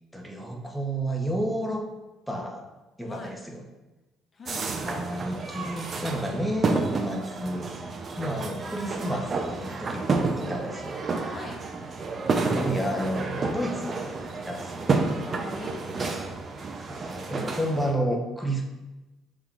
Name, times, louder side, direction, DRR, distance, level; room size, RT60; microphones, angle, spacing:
voice 1, 0.1-1.9 2.3-2.6 3.0-3.6 4.8-7.7 8.2-11.0 12.6-14.1 14.5-15.0 16.9-18.6, right 1 dB, ahead, 0 dB, 0.8 m, -31 dB
voice 2, 4.3-4.7 10.7-10.9 11.3-11.6 15.3-16.2, left 3 dB, 40° left, 1 dB, 0.6 m, -41 dB
sound 1, 4.5-17.9, right 3 dB, 40° right, 0.5 m, -30 dB
5.3 x 3.6 x 2.4 m, 1.1 s
supercardioid pair, 75°, 0 cm